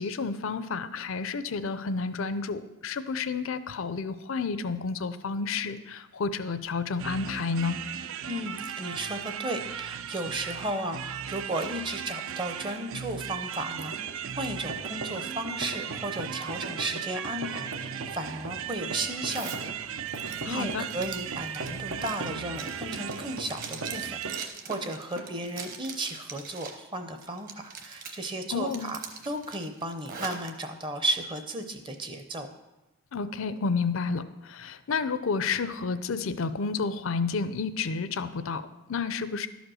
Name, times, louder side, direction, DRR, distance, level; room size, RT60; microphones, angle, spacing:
voice 1, 0.0-7.8 20.4-20.9 28.5-28.9 33.1-39.5, left 4 dB, 65° left, 13 dB, 0.5 m, -30 dB
sound 1, 7.0-24.5, right 8 dB, 70° right, 0.4 m, -37 dB
voice 2, 8.3-32.5, right 1 dB, 20° right, 7 dB, 0.6 m, -34 dB
sound 2, 13.8-24.4 24.7-24.9 25.2-25.4, right 2 dB, 90° right, 1.0 m, -40 dB
Zipper (clothing), 19.3-19.6 20.1-26.8 27.2-28.3 28.7-30.5, right 5 dB, 40° right, 1.0 m, -42 dB
11.5 x 5.1 x 6.2 m, 1.0 s
head